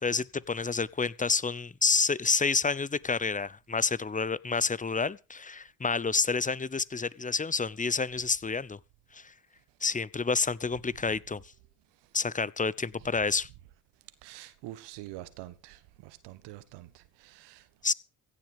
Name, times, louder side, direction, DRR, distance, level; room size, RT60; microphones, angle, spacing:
voice 1, 0.0-8.8 9.1-9.3 9.8-11.4 12.1-13.5 17.8-17.9, left 4 dB, 20° left, 0.8 m, -29 dB
voice 2, 14.2-17.7, right 16 dB, 75° right, 1.6 m, -46 dB
16.0 x 10.5 x 5.5 m
hypercardioid pair, 45°, 42 cm